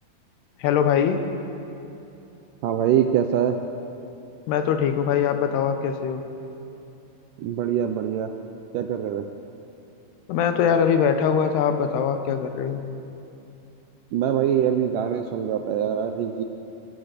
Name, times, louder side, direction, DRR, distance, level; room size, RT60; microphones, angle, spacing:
voice 1, 0.6-1.2 4.5-6.2 10.3-12.8, left 7 dB, 85° left, 8 dB, 3.2 m, -22 dB
voice 2, 2.6-3.6 7.4-8.3 8.7-9.3 14.1-16.4, right 9 dB, 75° right, 6 dB, 2.0 m, -23 dB
26.5 x 17.0 x 6.8 m, 2.8 s
omnidirectional pair, 4.6 m